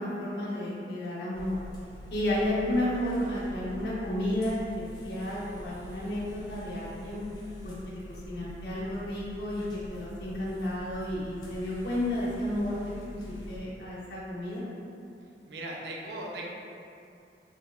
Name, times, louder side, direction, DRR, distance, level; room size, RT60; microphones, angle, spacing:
voice 1, 0.0-1.6 2.1-7.2 7.6-13.0 13.5-14.7, left 1 dB, 65° left, -7 dB, 0.6 m, -32 dB
sound 1, 1.3-13.6, equal, 25° left, 0.4 m, -45 dB
voice 2, 15.5-16.5, right 1 dB, 75° right, -2 dB, 0.4 m, -38 dB
2.9 x 2.2 x 2.2 m, 2.5 s
head